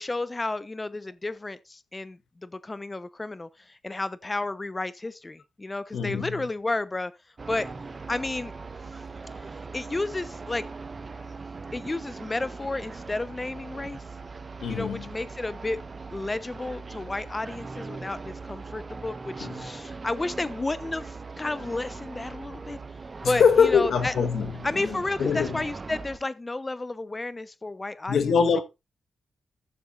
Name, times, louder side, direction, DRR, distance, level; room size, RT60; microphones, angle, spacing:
voice 1, 0.0-7.1 7.5-7.7 8.1-8.5 9.4-10.7 11.7-14.0 14.7-15.8 16.1-22.8 23.2-24.1 24.6-28.3, left 2 dB, 30° left, 0.9 m, -32 dB
voice 2, 5.9-6.5 14.6-15.1 19.4-19.7 23.2-25.6 28.1-28.6, left 6 dB, 75° left, 1.5 m, -24 dB
sound 1, 7.4-26.2, right 4 dB, 45° right, 1.1 m, -40 dB
14.0 x 6.9 x 2.5 m
supercardioid pair, 50°, 0 cm